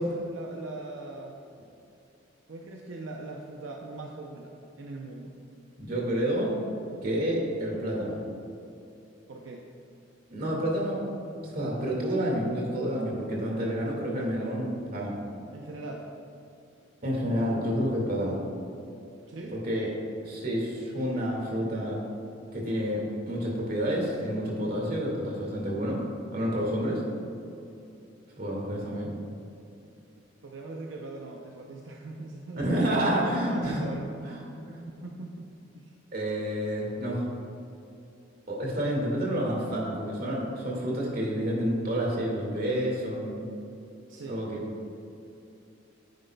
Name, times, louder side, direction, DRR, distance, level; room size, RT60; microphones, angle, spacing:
voice 1, 0.0-1.4 2.5-5.3 9.3-9.7 15.5-16.1 19.3-19.6 29.9-30.0 30.4-32.7 33.3-34.4 35.0-35.9 44.1-44.4, right 2 dB, 80° right, 0 dB, 0.6 m, -41 dB
voice 2, 5.8-6.5 7.0-8.2 10.3-11.0 11.4-15.1 17.0-18.4 19.5-19.9 20.2-22.0 22.5-26.0 26.3-27.0 28.4-29.1 32.6-33.8 34.3-34.8 36.1-37.3 38.5-43.4 44.3-44.6, equal, 50° right, -3 dB, 1.9 m, -29 dB
10.5 x 9.0 x 2.2 m, 2.7 s
head